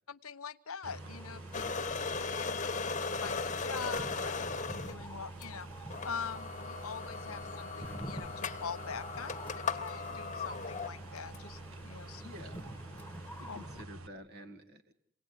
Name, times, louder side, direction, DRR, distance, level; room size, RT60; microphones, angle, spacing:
voice 1, 0.1-1.6 2.2-5.7 6.0-12.2 13.5-13.7, left 6 dB, 80° left, 14 dB, 1.1 m, -44 dB
sound 1, 0.8-13.8, right 1 dB, 10° left, 1.6 m, -49 dB
sound 2, 0.8-14.1, right 2 dB, 75° right, 1.7 m, -48 dB
sound 3, 1.5-5.0 5.4-5.5 5.9-11.4, left 4 dB, 35° left, 1.4 m, -37 dB
voice 2, 12.2-12.7 13.1-14.9, equal, 50° right, 5 dB, 1.9 m, -50 dB
28.5 x 19.0 x 9.9 m, 0.69 s
head